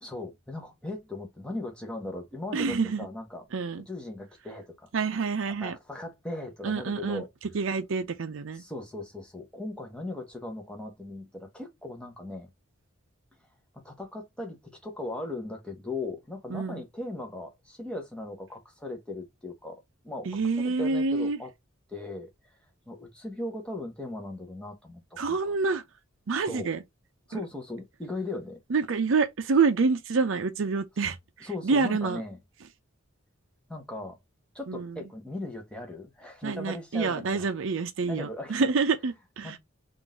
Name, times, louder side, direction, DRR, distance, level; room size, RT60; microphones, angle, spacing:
voice 1, 0.0-3.5 3.9-4.9 5.6-7.3 8.5-12.5 13.7-21.5 21.9-22.3 22.9-25.0 25.3-25.6 26.4-26.7 27.3-28.6 31.4-32.4 33.7-34.2 34.5-37.5 38.1-38.7 39.4-39.6, left 2 dB, 5° left, 0.9 m, -38 dB
voice 2, 2.5-3.1 3.5-3.8 4.9-5.8 6.6-7.2 7.5-8.6 16.5-16.8 20.2-21.4 25.2-25.8 26.3-26.8 27.3-27.4 28.7-32.2 34.7-35.0 36.4-39.6, right 4 dB, 65° right, 0.5 m, -27 dB
3.8 x 2.5 x 3.5 m
head